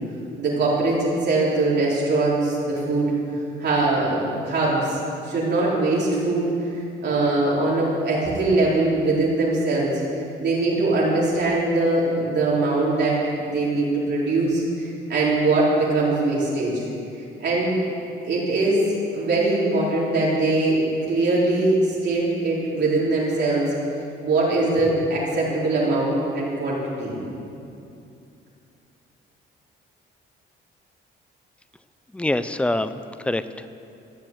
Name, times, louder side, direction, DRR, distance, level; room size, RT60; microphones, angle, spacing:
voice 1, 0.4-3.1 3.6-5.0 5.2-9.9 10.4-16.8 17.4-17.8 18.2-18.8 19.1-23.6 24.2-27.2, right 2 dB, 60° right, -6 dB, 4.2 m, -22 dB
voice 2, 32.1-33.7, left 1 dB, 5° left, 12 dB, 0.5 m, -25 dB
14.5 x 7.5 x 8.2 m, 2.6 s
cardioid pair, 90°, 20 cm